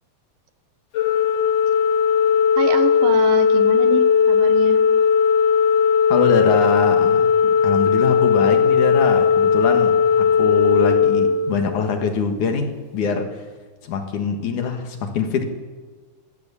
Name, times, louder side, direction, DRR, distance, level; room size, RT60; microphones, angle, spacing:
Organ, 0.9-12.0, left 6 dB, 90° left, 1.0 m, -17 dB
voice 1, 2.6-4.8, right 8 dB, 75° right, 9 dB, 3.0 m, -27 dB
voice 2, 6.1-13.4 13.8-15.4, left 5 dB, 60° left, 6 dB, 3.0 m, -24 dB
22.0 x 17.5 x 7.0 m, 1.4 s
omnidirectional pair, 4.1 m